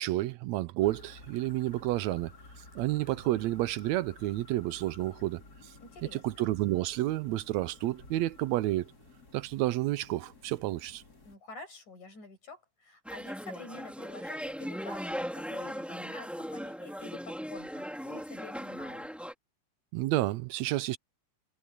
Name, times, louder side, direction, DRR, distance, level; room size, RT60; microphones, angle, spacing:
voice 1, 0.0-2.3 2.8-5.7 6.1-8.9 9.3-11.0 19.9-21.0, right 16 dB, 80° right, 1.8 m, -30 dB
sound 1, 0.8-11.4, left 3 dB, 30° left, 4.1 m, -54 dB
voice 2, 5.8-6.4 11.3-19.1, left 3 dB, 90° left, 9.3 m, -48 dB
sound 2, 13.0-19.3, equal, ahead, 3.4 m, -38 dB
omnidirectional pair, 3.3 m